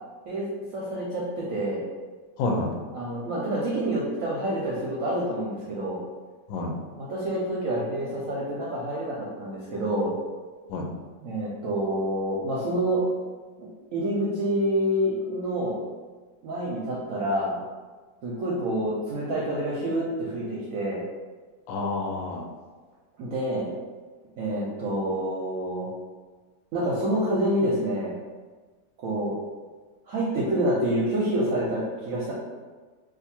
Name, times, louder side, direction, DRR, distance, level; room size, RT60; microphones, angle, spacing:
voice 1, 0.7-1.8 2.9-6.0 7.0-10.1 11.2-13.0 13.6-15.8 16.4-17.6 18.2-21.0 23.2-23.7 24.4-25.9 26.7-28.1 29.0-29.3 30.1-32.3, right 1 dB, 65° right, -5 dB, 0.9 m, -27 dB
voice 2, 2.4-2.7 6.5-6.7 10.7-10.9 21.7-22.4, left 2 dB, 65° left, 1 dB, 0.8 m, -28 dB
2.6 x 2.6 x 4.2 m, 1.4 s
omnidirectional pair, 1.9 m